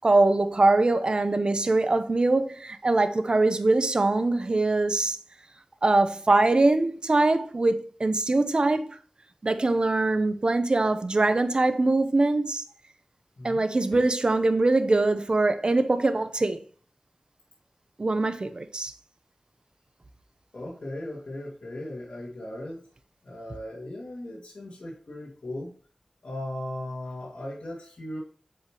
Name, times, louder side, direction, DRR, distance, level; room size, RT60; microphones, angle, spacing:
voice 1, 0.0-5.2 5.8-9.0 9.4-12.6 13.4-16.6 18.0-18.9, right 2 dB, 50° right, 0.9 m, -23 dB
voice 2, 20.5-22.9 23.2-25.7 26.2-28.2, left 1 dB, 75° left, 2.4 m, -37 dB
7.7 x 5.5 x 3.2 m
wide cardioid pair, 55°, 2 cm